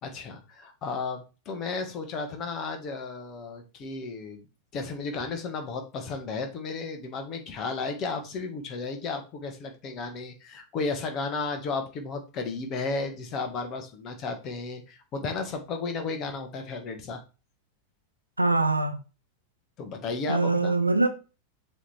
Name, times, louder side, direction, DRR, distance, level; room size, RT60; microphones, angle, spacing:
voice 1, 0.0-4.5 4.7-17.2 19.8-20.8, left 4 dB, 35° left, 1.7 m, -33 dB
voice 2, 18.4-19.0 20.3-21.1, right 3 dB, 85° right, 0.9 m, -23 dB
6.9 x 3.6 x 4.6 m
figure-of-eight pair, 90°, 0 cm